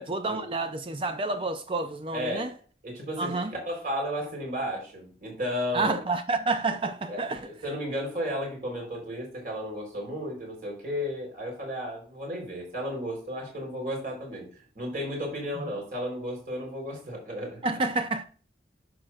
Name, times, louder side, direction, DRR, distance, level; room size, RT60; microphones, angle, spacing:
voice 1, 0.0-2.5 3.2-3.5 5.7-7.5 15.6-15.7 17.6-18.2, right 3 dB, 30° right, 0.4 m, -29 dB
voice 2, 2.1-2.5 2.8-6.0 7.1-14.5 14.8-17.6, equal, 50° right, 3.9 m, -33 dB
10.5 x 6.3 x 2.4 m
head